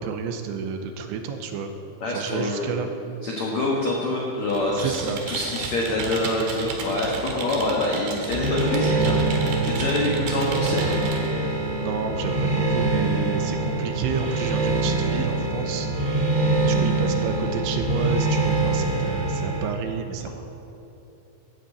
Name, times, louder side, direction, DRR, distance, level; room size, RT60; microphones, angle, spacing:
voice 1, 0.0-1.7 2.1-2.9 4.7-5.2 7.3-7.5 11.7-15.9 16.4-20.3, right 6 dB, 80° right, 6 dB, 2.9 m, -31 dB
voice 2, 2.0-2.7 3.2-10.9, left 2 dB, 75° left, -3 dB, 1.6 m, -26 dB
Computer keyboard, 4.4-11.3, right 4 dB, 65° right, 2.8 m, -34 dB
sound 1, 8.3-19.6, right 2 dB, 15° right, 1.4 m, -24 dB
12.0 x 8.2 x 8.4 m, 3.0 s
omnidirectional pair, 5.5 m